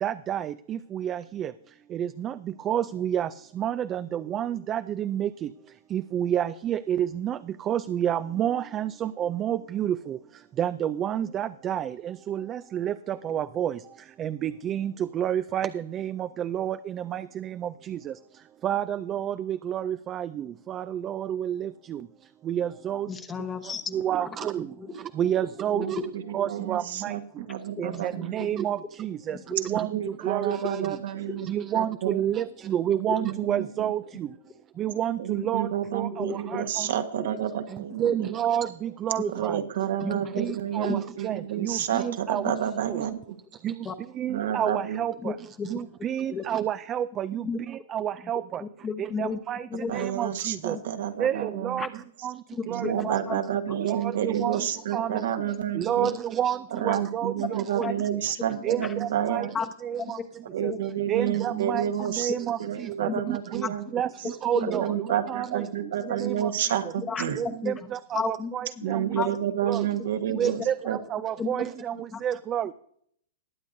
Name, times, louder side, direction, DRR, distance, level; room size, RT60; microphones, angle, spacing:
voice 1, 0.0-1.5 1.9-2.3 2.7-3.3 3.6-5.5 5.9-7.4 7.7-10.2 10.6-13.8 14.2-18.1 18.6-22.0 22.5-23.1 23.6-24.7 25.2-26.0 26.3-27.1 27.8-29.9 30.2-30.9 31.5-34.3 34.8-36.9 37.7-39.6 40.0-42.5 42.8-43.0 43.6-43.7 44.2-45.3 45.7-48.6 49.0-49.6 49.9-50.8 51.2-51.9 52.2-52.3 52.7-53.2 53.8-54.6 54.9-55.2 55.8-58.1 58.6-59.5 59.8-60.2 60.6-60.7 61.1-64.1 64.4-64.9 65.3-65.7 66.1-66.5 67.4-69.0 69.6-69.8 70.4-72.0 72.2-72.7, right 10 dB, 25° right, 14 dB, 0.3 m, -29 dB
voice 2, 23.1-24.0 24.8-24.9 25.7-25.8 27.8-28.0 29.3-29.4 36.1-36.7 40.0-40.2 40.8-41.0 43.8-43.9 45.2-45.3 45.6-45.7 46.3-46.4 47.4-47.6 48.6-49.4 49.7-50.1 51.8-51.9 52.8-53.4 57.8-57.9 59.5-59.6 60.6-60.8 63.1-63.2 64.6-64.7 67.1-67.8 68.1-69.3 70.3-70.4 71.4-71.6 72.1-72.2, left 5 dB, 15° left, 7 dB, 0.9 m, -33 dB
voice 3, 26.3-27.2 27.5-28.5 29.7-31.5 31.7-32.2 32.9-33.9 35.2-38.1 39.3-43.4 44.3-45.0 49.9-52.0 52.6-56.1 56.7-59.5 60.5-62.3 62.6-63.8 64.6-67.4 68.8-71.0, right 10 dB, 70° right, 7 dB, 1.3 m, -30 dB
20.5 x 8.1 x 2.6 m, 0.67 s
hypercardioid pair, 145°, 0 cm